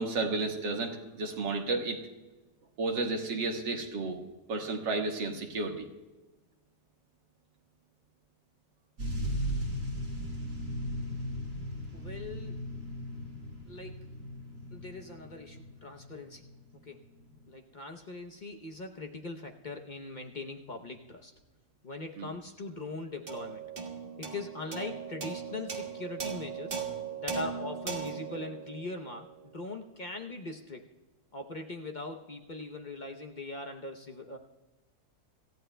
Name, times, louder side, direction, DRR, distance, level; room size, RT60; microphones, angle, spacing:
voice 1, 0.0-2.0 2.8-4.2 4.5-5.9 22.2-22.3, right 3 dB, 75° right, 2 dB, 2.2 m, -32 dB
sound 1, 9.0-16.5 17.2-17.3, equal, 60° right, 4.3 m, -37 dB
voice 2, 11.9-12.7 13.7-14.0 14.7-16.4 16.7-21.3 21.8-23.6 24.2-26.8 27.2-30.8 31.3-34.4, left 2 dB, 45° left, 3 dB, 0.6 m, -41 dB
sound 2, 23.3-29.9, right 6 dB, 30° right, 1.6 m, -39 dB
27.0 x 14.5 x 2.2 m, 1.1 s
omnidirectional pair, 2.0 m